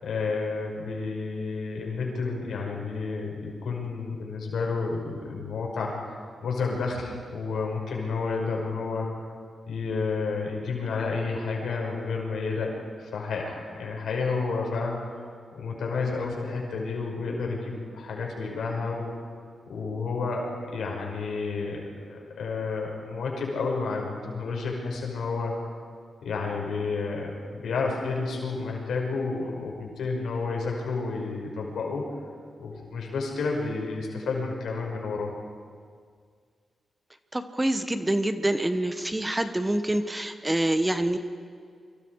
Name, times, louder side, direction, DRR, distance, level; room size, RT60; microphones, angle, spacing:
voice 1, 0.0-5.9 6.4-9.1 9.7-12.7 13.0-15.0 15.5-19.1 19.7-21.8 22.1-25.5 26.2-32.1 32.6-35.3, left 4 dB, 85° left, 0 dB, 5.8 m, -30 dB
voice 2, 37.3-41.2, right 1 dB, 15° right, 8 dB, 1.4 m, -26 dB
29.0 x 25.0 x 4.9 m, 2.1 s
cardioid pair, 70°, 0 cm